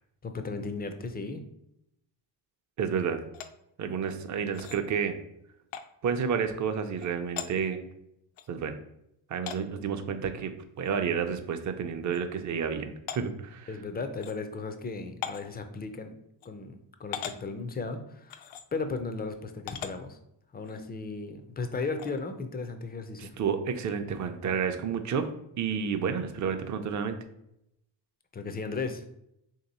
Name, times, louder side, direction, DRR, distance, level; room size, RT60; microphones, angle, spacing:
voice 1, 0.2-1.5 13.7-16.1 16.4-20.2 20.5-23.4 28.3-29.1, left 4 dB, 20° left, 7 dB, 0.4 m, -36 dB
voice 2, 2.8-3.2 3.8-5.2 6.0-7.8 8.5-8.7 9.3-13.7 23.2-25.3 25.6-27.2, right 6 dB, 40° right, 7 dB, 0.5 m, -30 dB
sound 1, 3.3-3.5 4.5-4.8 5.7-5.9 7.0-7.1 7.4-7.5 8.4-8.5 9.5-9.6 10.8-10.9 11.3-11.4 12.1-12.2 13.1-13.2 14.2-14.3 15.2-15.5 16.4-16.5 17.1-17.4 18.3-18.6 19.7-19.9 20.6-20.8 22.0-22.2, left 9 dB, 75° left, 0.5 m, -38 dB
2.9 x 2.8 x 4.1 m, 0.80 s
cardioid pair, 90°, 49 cm